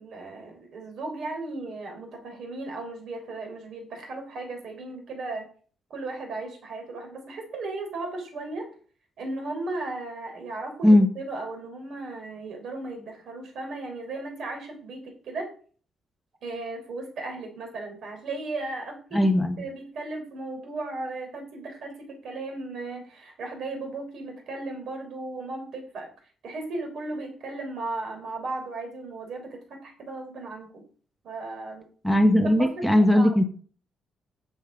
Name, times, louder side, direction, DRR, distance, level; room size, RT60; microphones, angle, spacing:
voice 1, 0.0-5.5 5.9-8.7 9.2-15.5 16.4-26.1 26.4-30.8 31.2-31.9 32.6-33.4, right 2 dB, 55° right, 3 dB, 3.9 m, -36 dB
voice 2, 19.1-19.6 32.0-33.4, left 1 dB, ahead, 5 dB, 0.8 m, -18 dB
10.0 x 7.1 x 5.1 m, 0.43 s
cardioid pair, 170°, 0 cm